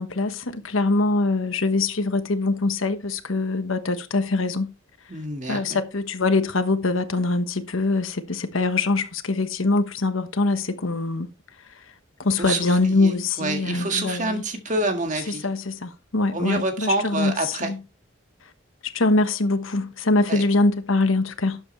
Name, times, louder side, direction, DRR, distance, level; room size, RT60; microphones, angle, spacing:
voice 1, 0.0-4.7 5.5-11.3 12.2-14.4 15.4-17.3 17.6-17.8 18.8-21.6, left 3 dB, 75° left, 1.2 m, -23 dB
voice 2, 5.1-5.8 12.4-15.5 16.3-17.7 20.3-20.4, right 2 dB, 35° right, 1.8 m, -27 dB
12.5 x 7.8 x 3.2 m
head